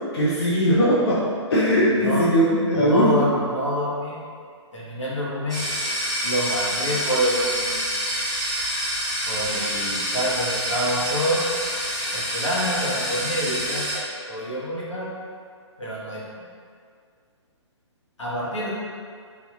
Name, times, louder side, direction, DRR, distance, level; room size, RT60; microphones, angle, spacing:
voice 1, 0.1-1.2 1.5-3.1, equal, 55° left, -8 dB, 0.6 m, -19 dB
voice 2, 1.9-2.2 2.7-4.2 4.7-5.7 6.2-7.9 9.3-11.5 12.1-15.1 15.8-16.5 18.2-18.7, equal, 80° left, -7 dB, 1.0 m, -27 dB
sound 1, 5.5-14.0, equal, 5° left, 0.9 m, -27 dB
3.4 x 2.3 x 2.3 m, 2.2 s
figure-of-eight pair, 135°, 16 cm